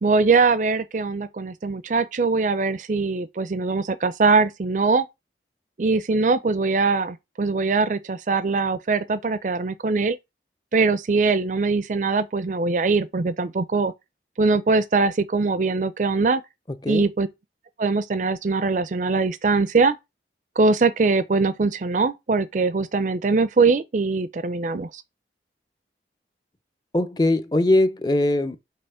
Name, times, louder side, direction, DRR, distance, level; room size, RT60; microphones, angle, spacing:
voice 1, 0.0-5.1 5.8-10.2 10.7-13.9 14.4-16.4 16.9-17.3 17.8-20.0 20.6-25.0, right 4 dB, 45° right, 0.4 m, -22 dB
voice 2, 26.9-28.6, left 1 dB, 20° left, 0.5 m, -20 dB
5.5 x 3.2 x 5.4 m
head